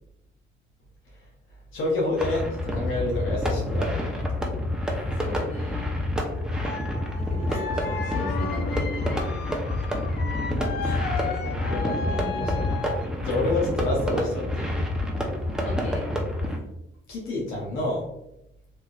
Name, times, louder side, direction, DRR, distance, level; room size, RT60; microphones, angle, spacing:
voice 1, 1.7-4.2 7.5-7.7 10.8-14.9 17.1-18.1, left 2 dB, 85° left, -2 dB, 0.7 m, -29 dB
sound 1, 2.2-16.6, left 1 dB, 5° right, 0.6 m, -28 dB
voice 2, 5.2-5.9 7.1-9.7 10.0-10.6 12.1-12.7 15.6-16.1, left 1 dB, 35° left, -4 dB, 1.4 m, -38 dB
sound 2, 6.6-13.1, left 5 dB, 55° left, 0.4 m, -34 dB
3.3 x 2.5 x 2.4 m, 0.85 s
cardioid pair, 90°, 20 cm